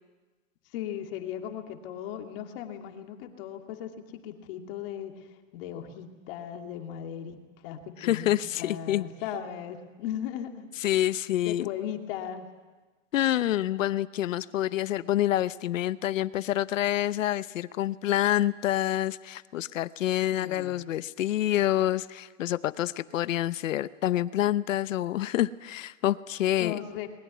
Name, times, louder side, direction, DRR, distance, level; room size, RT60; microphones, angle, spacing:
voice 1, 0.7-10.7 11.4-12.5 20.3-20.8 26.6-27.1, left 10 dB, 45° left, 4 dB, 2.5 m, -37 dB
voice 2, 8.0-9.0 10.8-11.7 13.1-26.8, left 13 dB, 70° left, 16 dB, 0.9 m, -27 dB
21.5 x 21.0 x 9.5 m, 1.3 s
hypercardioid pair, 145°, 40 cm